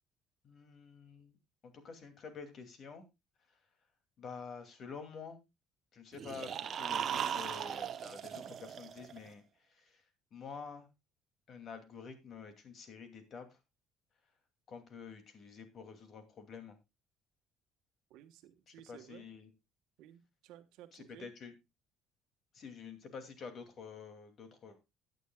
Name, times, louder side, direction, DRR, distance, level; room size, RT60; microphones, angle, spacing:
voice 1, 0.4-1.4 1.6-3.0 4.2-5.4 5.9-10.0 10.3-10.9 11.5-13.6 14.7-16.8 18.7-19.5 20.9-21.5 22.5-24.8, left 5 dB, 45° left, 7 dB, 2.5 m, -49 dB
sound 1, 6.1-9.3, right 8 dB, 45° right, 0.9 m, -38 dB
voice 2, 18.1-19.3 20.0-21.3, right 12 dB, 80° right, 9 dB, 1.3 m, -56 dB
16.5 x 9.2 x 2.3 m, 0.23 s
cardioid pair, 125°, 0 cm